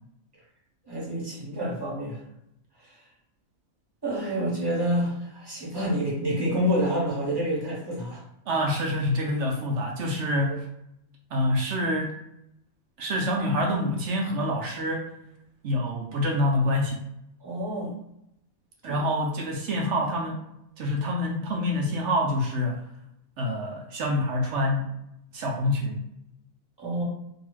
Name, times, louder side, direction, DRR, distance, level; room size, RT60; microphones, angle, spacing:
voice 1, 0.8-2.2 2.8-3.0 4.0-8.2 10.5-10.6 17.4-17.9 18.8-19.0 26.8-27.0, equal, 20° right, -6 dB, 0.8 m, -28 dB
voice 2, 8.5-10.6 11.3-12.1 13.0-15.1 15.6-17.0 18.8-20.4 20.8-22.8 23.4-24.9 25.3-26.0, left 1 dB, 65° right, -1 dB, 0.8 m, -26 dB
2.7 x 2.3 x 3.0 m, 0.80 s
omnidirectional pair, 1.5 m